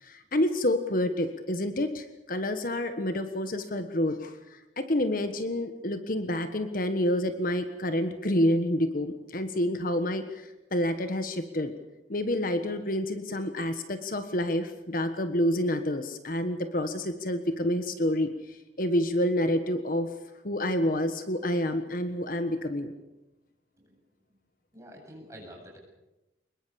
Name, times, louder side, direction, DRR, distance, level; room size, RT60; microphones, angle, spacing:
voice 1, 0.0-11.7 12.1-20.1 20.4-22.9, left 1 dB, 50° left, 8 dB, 1.5 m, -28 dB
voice 2, 24.7-25.8, equal, 15° right, 0 dB, 8.0 m, -47 dB
25.0 x 21.5 x 7.1 m, 0.98 s
head